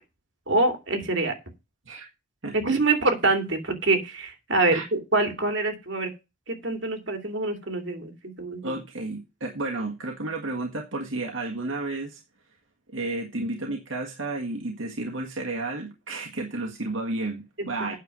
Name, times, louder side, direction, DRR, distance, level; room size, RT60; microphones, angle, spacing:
voice 1, 0.5-1.3 2.5-6.1 6.5-8.1 8.4-8.7, right 2 dB, 70° right, 2.9 m, -25 dB
voice 2, 2.4-2.8 4.7-4.9 8.6-12.2 12.9-18.0, right 2 dB, 85° right, 1.8 m, -32 dB
9.2 x 6.9 x 6.2 m
head